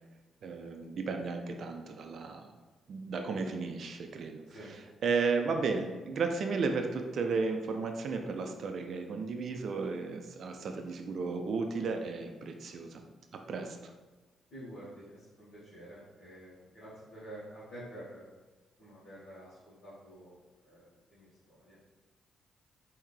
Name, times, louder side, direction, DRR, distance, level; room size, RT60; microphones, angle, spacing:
voice 1, 0.4-2.5 2.9-4.4 5.0-13.0 13.3-13.9, right 4 dB, 60° right, 4 dB, 0.3 m, -34 dB
voice 2, 14.5-18.2 18.8-21.8, right 1 dB, 65° left, -11 dB, 1.3 m, -49 dB
3.5 x 2.7 x 3.1 m, 1.2 s
hypercardioid pair, 45°, 0 cm